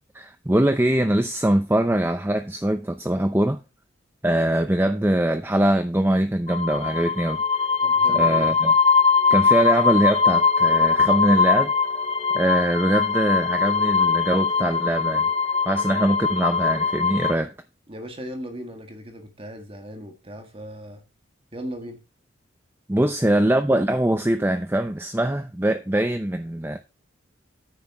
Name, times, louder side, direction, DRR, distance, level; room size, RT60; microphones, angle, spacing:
voice 1, 0.1-3.6 4.2-7.4 8.1-8.7 9.3-11.7 12.3-15.3 15.7-17.5 22.9-26.8, right 1 dB, 10° right, 0.6 m, -22 dB
sound 1, 6.5-17.3, left 5 dB, 30° left, 0.7 m, -21 dB
voice 2, 7.8-8.6 17.9-21.0 21.5-22.0 23.0-23.4, equal, 25° right, 1.6 m, -37 dB
9.6 x 6.2 x 4.6 m
head